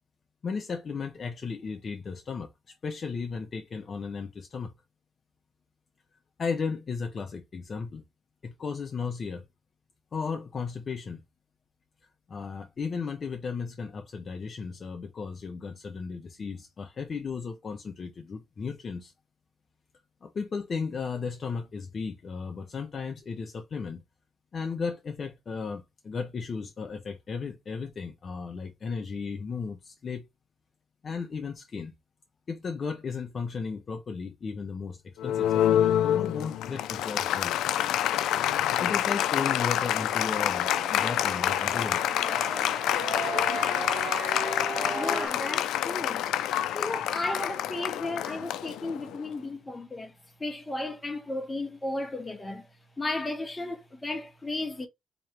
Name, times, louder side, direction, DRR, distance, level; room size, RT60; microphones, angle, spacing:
voice 1, 0.4-4.7 6.4-8.0 8.4-9.4 10.1-11.2 12.3-19.1 20.2-24.0 24.5-30.3 31.0-31.9 32.5-37.6 38.8-42.0, left 5 dB, 40° left, 0.6 m, -35 dB
Applause, 35.2-49.3, left 11 dB, 90° left, 0.3 m, -27 dB
sound 1, 39.1-45.3, right 4 dB, 75° right, 1.3 m, -37 dB
voice 2, 44.9-46.3 46.7-50.1 50.4-52.7 53.0-54.9, left 2 dB, 15° left, 1.0 m, -34 dB
3.1 x 2.9 x 4.5 m
cardioid pair, 115°, 0 cm